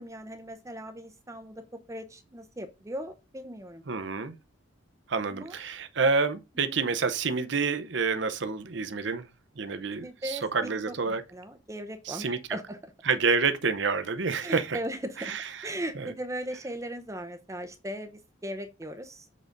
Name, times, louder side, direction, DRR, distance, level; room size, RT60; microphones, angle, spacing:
voice 1, 0.0-3.8 5.3-5.6 6.7-6.8 10.0-12.8 14.4-15.3 15.6-19.3, right 1 dB, 15° right, 0.7 m, -38 dB
voice 2, 3.9-4.3 5.1-9.3 9.6-11.2 12.1-12.4 13.1-14.8 15.3-15.4 16.0-16.1, right 4 dB, 60° right, 0.8 m, -28 dB
7.4 x 4.0 x 5.2 m
head